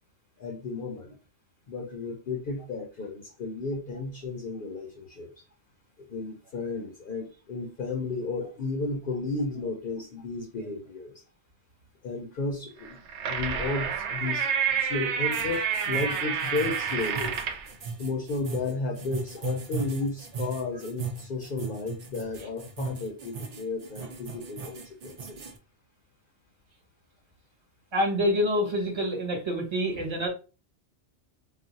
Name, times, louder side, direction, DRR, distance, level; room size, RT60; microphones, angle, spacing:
voice 1, 0.4-1.1 1.7-5.4 6.1-11.1 12.0-13.0 13.2-17.4 18.0-25.5, left 3 dB, 55° left, 2 dB, 0.7 m, -33 dB
sound 1, 12.8-17.7, right 7 dB, 75° right, 0.9 m, -29 dB
sound 2, 15.3-25.6, right 4 dB, 50° right, 0.5 m, -37 dB
voice 2, 27.9-30.3, equal, 25° right, 1 dB, 0.9 m, -26 dB
2.4 x 2.3 x 3.9 m, 0.33 s
omnidirectional pair, 1.2 m